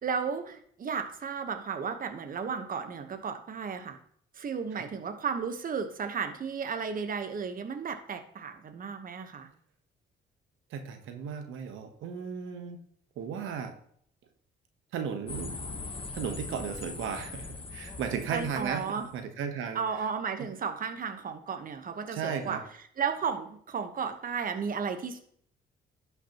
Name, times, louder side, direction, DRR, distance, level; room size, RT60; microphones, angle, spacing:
voice 1, 0.0-4.0 4.3-9.5 18.3-19.1 19.7-22.6 23.0-25.2, right 6 dB, 45° right, 7 dB, 1.1 m, -34 dB
voice 2, 10.7-12.8 13.2-13.7 14.9-15.5 16.1-20.1 22.1-22.6, right 7 dB, 85° right, 6 dB, 1.1 m, -35 dB
sound 1, 15.3-19.2, left 3 dB, 25° left, 1.1 m, -41 dB
11.5 x 5.9 x 2.9 m, 0.62 s
cardioid pair, 90°, 20 cm